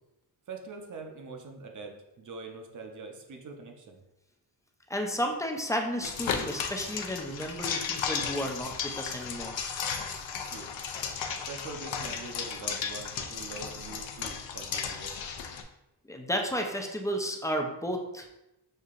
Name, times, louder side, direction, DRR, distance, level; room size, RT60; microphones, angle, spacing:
voice 1, 0.5-4.0 10.5-10.7 11.4-15.2, right 3 dB, 45° right, 3 dB, 0.7 m, -43 dB
voice 2, 4.9-9.6 16.1-18.3, equal, 10° left, 2 dB, 0.3 m, -32 dB
sound 1, 6.0-15.6, left 6 dB, 90° left, 0.6 m, -35 dB
6.4 x 2.7 x 2.5 m, 0.92 s
wide cardioid pair, 150°, 45 cm